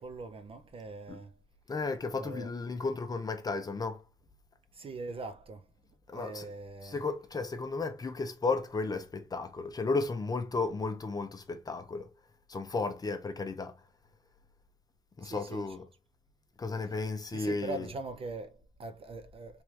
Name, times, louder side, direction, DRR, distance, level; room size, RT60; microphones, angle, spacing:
voice 1, 0.0-1.4 2.2-2.5 4.7-5.7 6.1-7.0 15.2-15.8 17.3-19.6, right 3 dB, 30° right, 0.4 m, -42 dB
voice 2, 1.7-4.0 6.1-6.5 6.8-12.1 12.5-13.8 15.2-15.9 16.6-17.9, left 3 dB, 20° left, 0.5 m, -34 dB
3.5 x 3.1 x 3.2 m
cardioid pair, 155°, 18 cm